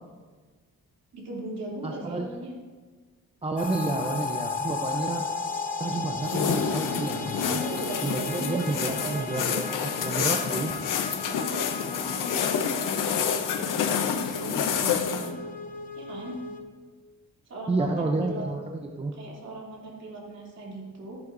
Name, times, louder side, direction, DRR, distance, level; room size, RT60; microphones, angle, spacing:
voice 1, 1.1-2.5 7.3-9.3 11.2-15.3 16.0-16.4 17.5-18.5 19.1-21.2, right 1 dB, 55° right, -3 dB, 2.9 m, -38 dB
voice 2, 1.8-2.3 3.4-5.3 5.8-7.6 8.0-10.7 17.7-19.1, right 3 dB, 20° right, 3 dB, 0.6 m, -30 dB
sound 1, 3.6-16.6, left 4 dB, 25° left, 0.8 m, -36 dB
sound 2, 6.2-15.3, left 7 dB, 80° left, 0.8 m, -28 dB
13.5 x 11.0 x 2.6 m, 1.5 s
wide cardioid pair, 155°, 31 cm